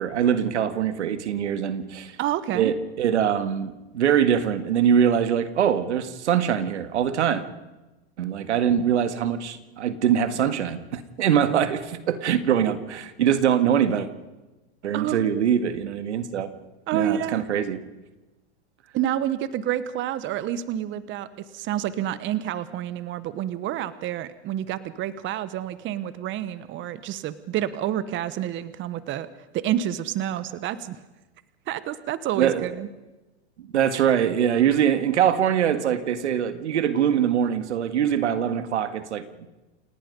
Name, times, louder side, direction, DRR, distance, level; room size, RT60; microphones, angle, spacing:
voice 1, 0.0-2.2 2.5-7.4 8.2-14.1 14.8-16.5 16.9-17.8 32.4-32.7 33.7-39.5, right 9 dB, 85° right, 11 dB, 1.9 m, -23 dB
voice 2, 2.2-2.7 12.7-12.8 14.9-15.3 16.9-17.5 18.9-29.3 29.5-31.0 31.7-32.9, right 11 dB, 35° right, 14 dB, 1.2 m, -29 dB
29.0 x 17.5 x 5.4 m, 1.1 s
hypercardioid pair, 120°, 34 cm